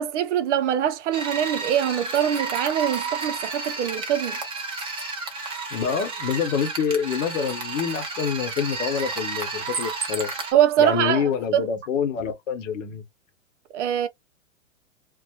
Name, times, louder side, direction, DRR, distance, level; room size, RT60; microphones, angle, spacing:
voice 1, 0.0-4.4 10.5-11.7 13.7-14.1, right 10 dB, 55° right, 0.5 m, -23 dB
sound 1, 1.1-10.5, right 4 dB, 15° right, 0.5 m, -31 dB
voice 2, 5.7-10.3 10.8-13.0, left 7 dB, 60° left, 0.9 m, -26 dB
2.2 x 2.0 x 2.8 m
hypercardioid pair, 115°, 42 cm